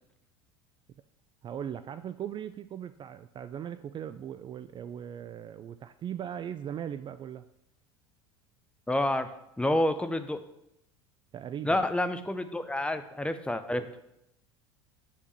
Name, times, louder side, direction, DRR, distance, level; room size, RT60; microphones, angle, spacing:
voice 1, 1.4-7.4 11.3-11.8, right 9 dB, 30° right, 12 dB, 0.4 m, -39 dB
voice 2, 8.9-9.3 9.6-10.4 11.6-13.9, left 1 dB, 5° left, 10 dB, 0.6 m, -28 dB
7.2 x 4.5 x 6.7 m, 0.83 s
hypercardioid pair, 75°, 15 cm